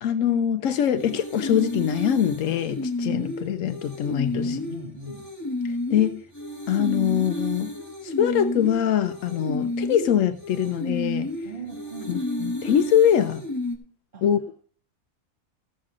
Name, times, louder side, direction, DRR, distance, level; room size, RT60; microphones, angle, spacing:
voice 1, 0.0-4.5 5.6-6.1 6.7-7.7 8.0-11.3 12.1-13.4 14.2-14.5, left 9 dB, 80° left, 1.0 m, -23 dB
sound 1, 1.0-13.8, left 1 dB, 15° left, 1.3 m, -31 dB
voice 2, 4.3-5.3 11.4-12.2 14.1-14.4, right 1 dB, 40° right, 2.5 m, -39 dB
13.5 x 7.4 x 3.8 m
omnidirectional pair, 1.3 m